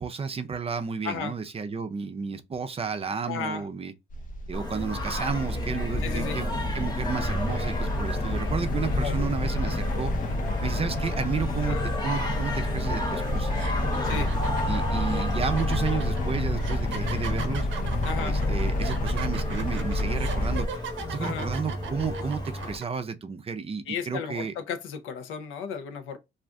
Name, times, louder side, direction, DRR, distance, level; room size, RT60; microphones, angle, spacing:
voice 1, 0.0-3.9 4.5-10.1 10.6-13.5 14.1-14.3 14.7-17.7 18.2-20.8 21.1-24.5, right 5 dB, 30° right, 0.5 m, -32 dB
voice 2, 3.3-3.6 6.0-6.4 9.0-9.3 9.7-9.8 11.6-11.9 14.0-14.3 18.0-18.4 21.2-21.5 23.9-26.2, left 6 dB, 90° left, 0.6 m, -34 dB
sound 1, 4.1-20.7, left 1 dB, 45° left, 0.5 m, -29 dB
Singing, 4.5-22.8, left 1 dB, 20° left, 1.0 m, -33 dB
sound 2, 12.8-13.0 13.5-22.8, right 7 dB, 75° right, 0.6 m, -39 dB
2.5 x 2.4 x 3.3 m
cardioid pair, 90°, 20 cm